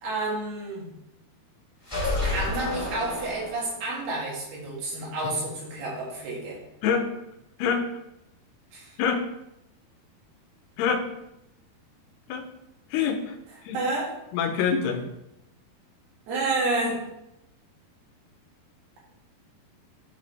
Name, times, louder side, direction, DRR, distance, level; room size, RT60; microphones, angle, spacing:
voice 1, 0.0-0.9 2.2-6.6 8.7-8.9 13.7-14.1 16.3-17.0, right 2 dB, 75° right, -4 dB, 3.9 m, -29 dB
sound 1, 1.8-3.9, left 2 dB, 15° left, 1.0 m, -30 dB
voice 2, 12.9-13.4 13.6-13.8 14.3-15.0, left 6 dB, 90° left, 5 dB, 2.8 m, -25 dB
11.0 x 4.1 x 3.3 m, 0.86 s
omnidirectional pair, 4.6 m